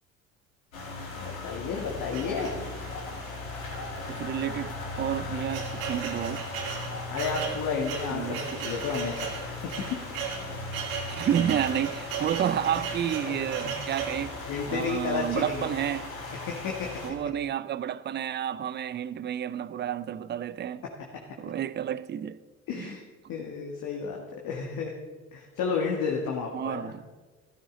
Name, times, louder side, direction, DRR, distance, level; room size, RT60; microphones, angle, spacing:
sound 1, 0.7-17.1, left 3 dB, 90° left, 2.2 m, -38 dB
voice 1, 1.2-2.6 7.1-9.3 9.9-10.0 12.8-12.9 13.2-13.4 13.6-13.7 14.5-15.7 16.5-16.9 22.7-23.0 23.3-24.2 24.4-24.9 25.3-26.9, left 5 dB, 55° left, 1.8 m, -31 dB
sound 2, 2.1-3.0 3.7-3.8 4.1-4.2 4.9-14.3, right 6 dB, 80° right, 1.8 m, -37 dB
voice 2, 4.1-6.5 8.1-8.4 11.1-14.4 14.7-16.1 17.0-20.8 21.4-22.4 22.7-22.9 26.5-27.0, right 10 dB, 25° right, 0.5 m, -30 dB
13.5 x 13.0 x 3.9 m
hypercardioid pair, 60°, 40 cm